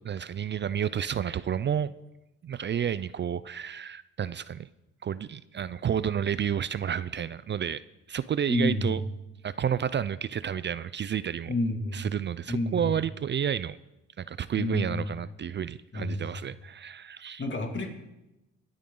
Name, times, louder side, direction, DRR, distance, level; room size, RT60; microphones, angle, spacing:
voice 1, 0.0-1.9 2.4-4.7 5.0-7.8 8.1-9.0 9.4-11.6 11.9-13.8 14.2-17.4, right 8 dB, 40° right, 17 dB, 0.4 m, -30 dB
voice 2, 8.5-9.0 11.5-12.1 12.5-12.9 14.6-15.1 15.9-16.2 17.4-17.9, left 1 dB, 40° left, 3 dB, 2.4 m, -29 dB
22.0 x 8.9 x 3.8 m, 0.95 s
cardioid pair, 90°, 30 cm